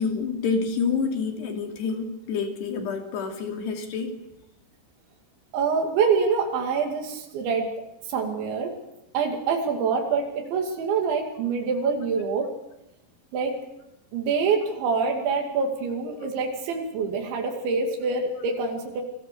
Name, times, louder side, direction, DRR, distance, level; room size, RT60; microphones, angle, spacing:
voice 1, 0.0-4.1, left 5 dB, 70° left, 4 dB, 4.8 m, -28 dB
voice 2, 5.5-7.7 8.0-8.7 9.1-12.5 13.3-13.6 14.1-19.0, right 5 dB, 90° right, 2 dB, 4.8 m, -25 dB
29.0 x 20.5 x 6.9 m, 0.89 s
omnidirectional pair, 5.1 m